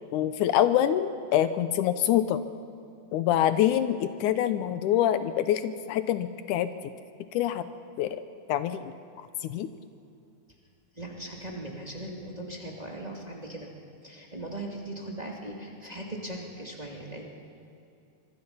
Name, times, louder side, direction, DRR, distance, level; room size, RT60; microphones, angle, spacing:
voice 1, 0.1-2.4 3.1-6.7 7.3-7.7 8.0-8.2 8.5-8.9 9.4-9.7, left 11 dB, 80° left, 12 dB, 2.2 m, -25 dB
voice 2, 11.0-13.7 14.0-17.3, right 1 dB, 15° right, -1 dB, 2.3 m, -39 dB
25.0 x 24.0 x 5.6 m, 2.6 s
omnidirectional pair, 3.6 m